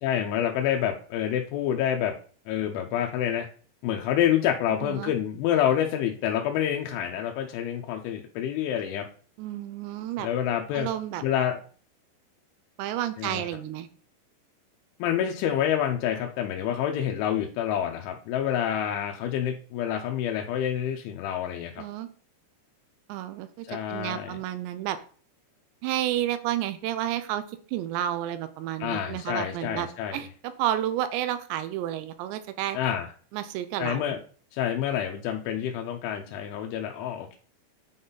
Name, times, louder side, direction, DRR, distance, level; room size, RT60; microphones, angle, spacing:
voice 1, 0.0-2.1 2.5-3.5 3.8-9.1 10.2-10.9 11.2-11.6 13.2-13.4 15.0-21.8 23.7-24.4 28.8-30.2 32.7-33.1 33.8-34.2 34.5-37.4, left 10 dB, 90° left, 2 dB, 3.1 m, -28 dB
voice 2, 4.8-5.1 9.4-10.3 10.7-11.2 12.8-13.9 21.8-22.1 23.1-25.0 25.8-27.4 27.7-30.3 30.6-32.8 33.3-34.0, right 12 dB, 80° right, 11 dB, 2.8 m, -31 dB
8.6 x 3.9 x 3.8 m, 0.42 s
omnidirectional pair, 5.3 m